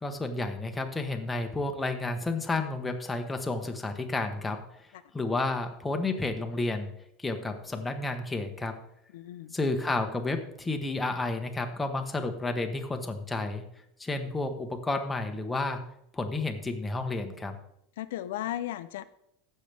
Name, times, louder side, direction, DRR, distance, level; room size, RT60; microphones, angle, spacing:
voice 1, 0.0-4.6 5.1-6.9 7.2-8.7 9.5-13.6 14.0-15.8 16.1-17.5, left 2 dB, 10° left, 4 dB, 0.9 m, -31 dB
voice 2, 9.1-9.6 18.0-19.0, left 13 dB, 85° left, 12 dB, 0.5 m, -35 dB
15.5 x 6.6 x 3.4 m, 0.76 s
supercardioid pair, 155°, 0 cm